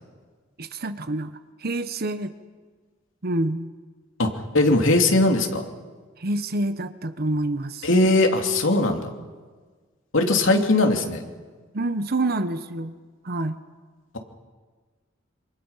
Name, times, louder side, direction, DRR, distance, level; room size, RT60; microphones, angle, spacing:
voice 1, 0.6-1.3 1.6-2.3 3.2-3.7 6.2-7.9 11.7-12.9 13.2-13.6, right 2 dB, 50° right, 11 dB, 1.0 m, -27 dB
voice 2, 4.2-5.6 7.8-9.1 10.1-11.2, left 2 dB, 80° left, 3 dB, 2.8 m, -20 dB
27.0 x 25.5 x 5.7 m, 1.4 s
head